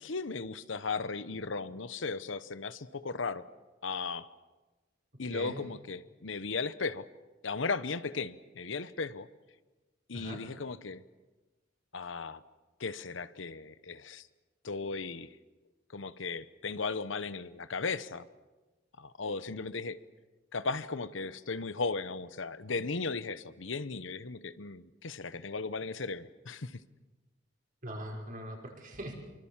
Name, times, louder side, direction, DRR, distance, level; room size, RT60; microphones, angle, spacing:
voice 1, 0.0-3.5 3.8-4.3 5.2-7.1 7.4-9.3 10.1-11.0 11.9-12.4 12.8-14.2 14.6-15.4 15.9-18.3 19.0-20.0 20.5-26.8, left 4 dB, 80° left, 14 dB, 1.0 m, -36 dB
voice 2, 5.3-5.6 10.1-10.4 27.8-29.1, right 1 dB, 45° right, 1 dB, 5.6 m, -41 dB
26.5 x 24.0 x 7.4 m, 1.2 s
head